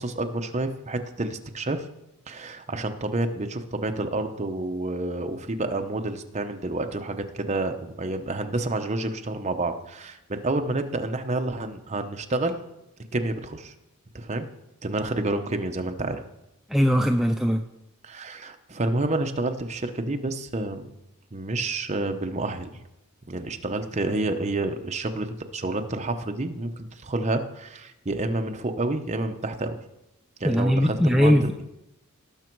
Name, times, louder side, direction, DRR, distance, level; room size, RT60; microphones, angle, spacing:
voice 1, 0.0-1.9 2.3-12.6 13.1-13.7 14.1-14.5 14.8-16.2 18.0-20.8 21.3-22.8 23.3-29.8 30.4-31.6, right 2 dB, 30° right, 6 dB, 0.8 m, -29 dB
voice 2, 16.7-17.6 30.4-31.6, equal, ahead, 4 dB, 0.4 m, -20 dB
18.5 x 6.2 x 4.6 m, 0.89 s
head